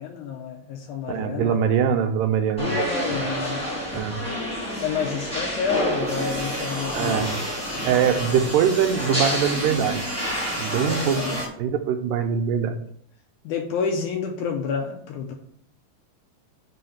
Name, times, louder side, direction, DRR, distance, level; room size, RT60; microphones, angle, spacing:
voice 1, 0.0-1.6 2.6-3.6 4.8-7.2 11.1-11.4 13.4-15.3, left 6 dB, 80° left, 2 dB, 1.8 m, -29 dB
voice 2, 1.1-2.9 3.9-4.2 6.9-7.4 7.8-10.0 10.6-12.8, right 8 dB, 80° right, 7 dB, 2.1 m, -23 dB
sound 1, 2.6-11.4, equal, 5° left, 1.2 m, -29 dB
sound 2, 6.1-11.5, equal, 60° right, 0.7 m, -37 dB
4.9 x 3.8 x 5.6 m, 0.64 s
omnidirectional pair, 4.0 m